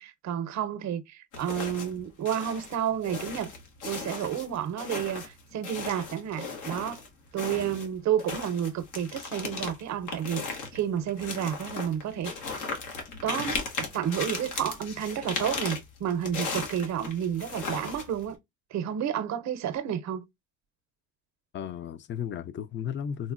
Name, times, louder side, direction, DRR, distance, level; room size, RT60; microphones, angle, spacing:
voice 1, 0.0-3.5 3.8-7.0 7.3-12.6 13.2-18.4 18.7-20.3, right 9 dB, 65° right, 0.6 m, -31 dB
sound 1, 1.3-2.0 2.3-7.1 7.4-18.3, left 4 dB, 90° left, 1.0 m, -36 dB
voice 2, 21.5-23.3, left 8 dB, 40° left, 0.4 m, -34 dB
3.8 x 2.1 x 2.4 m
cardioid pair, 90°, 30 cm